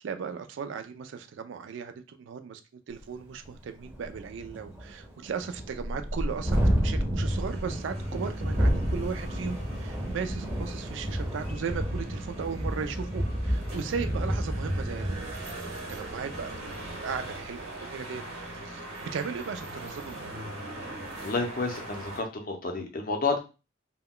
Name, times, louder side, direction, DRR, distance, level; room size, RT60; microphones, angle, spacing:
voice 1, 0.0-2.6 2.9-15.4 15.9-20.5, right 6 dB, 60° right, 8 dB, 0.3 m, -37 dB
Thunderstorm, 3.0-3.1 3.5-3.6 3.8-17.5, equal, 5° right, 0.5 m, -31 dB
sound 1, 7.3-22.2, right 1 dB, 90° right, 0.9 m, -42 dB
voice 2, 21.2-23.4, left 3 dB, 45° left, 4 dB, 0.5 m, -30 dB
2.2 x 2.2 x 3.6 m, 0.30 s
head